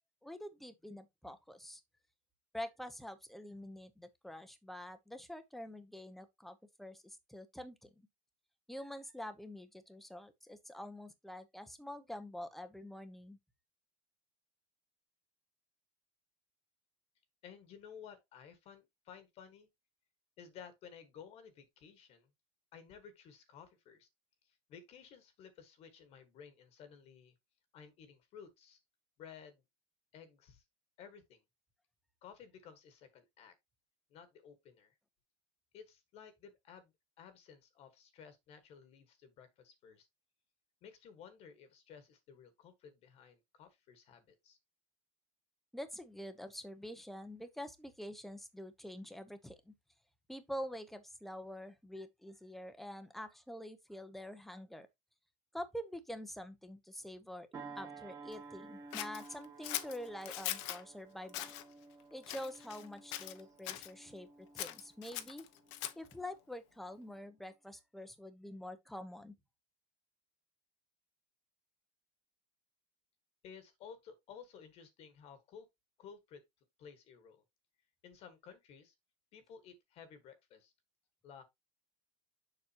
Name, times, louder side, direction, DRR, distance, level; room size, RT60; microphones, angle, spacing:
voice 1, 0.2-1.8 2.5-7.9 8.7-13.4 45.7-49.7 50.3-54.9 55.5-57.5 57.8-61.5 62.1-65.5 66.0-69.4, left 1 dB, ahead, 0.8 m, -46 dB
voice 2, 17.4-19.7 20.4-22.3 22.7-24.1 24.4-27.3 27.7-28.8 29.2-29.6 30.1-30.6 31.0-31.4 32.2-33.6 34.1-34.9 35.7-36.9 37.2-40.1 40.8-44.6 73.4-75.7 76.0-76.4 76.8-77.4 78.0-78.9 79.3-80.7 81.2-81.4, left 7 dB, 35° left, 1.4 m, -55 dB
sound 1, 57.5-66.4 66.9-67.1, right 4 dB, 20° right, 1.5 m, -54 dB
Scissors, 58.9-60.8 61.3-61.6 62.2-62.9 63.1-63.9 64.5-66.1, left 14 dB, 60° left, 0.9 m, -41 dB
7.1 x 6.3 x 2.8 m
cardioid pair, 165°, 17 cm